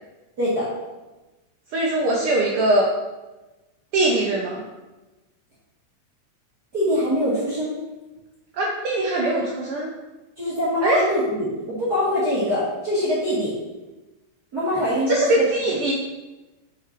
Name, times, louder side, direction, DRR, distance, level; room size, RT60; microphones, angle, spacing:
voice 1, 0.4-0.7 6.7-7.8 10.4-13.5 14.5-15.4, equal, 40° right, -10 dB, 1.8 m, -23 dB
voice 2, 1.7-2.9 3.9-4.6 8.5-9.9 10.8-11.0 15.1-15.9, right 1 dB, 85° right, -2 dB, 1.2 m, -21 dB
6.1 x 4.9 x 4.5 m, 1.1 s
omnidirectional pair, 3.5 m